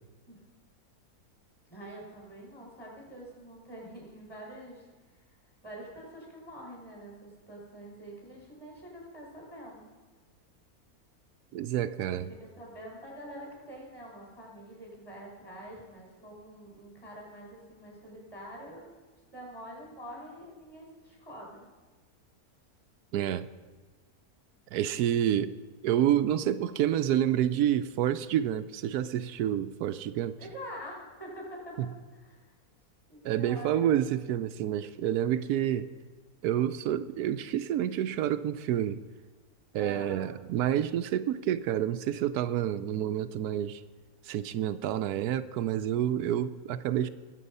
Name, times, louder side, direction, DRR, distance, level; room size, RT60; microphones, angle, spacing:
voice 1, 1.7-4.9 5.6-9.9 12.0-18.9 19.3-21.7 30.4-31.8 32.1-32.5 33.1-33.9 39.7-40.3, equal, 15° left, -3 dB, 5.1 m, -46 dB
voice 2, 11.5-12.3 23.1-23.5 24.7-25.5 25.8-30.4 31.8-31.9 33.2-35.9 36.4-39.0 39.7-43.8 44.2-47.1, right 11 dB, 90° right, 11 dB, 1.1 m, -28 dB
21.0 x 7.9 x 5.4 m, 1.3 s
omnidirectional pair, 1.6 m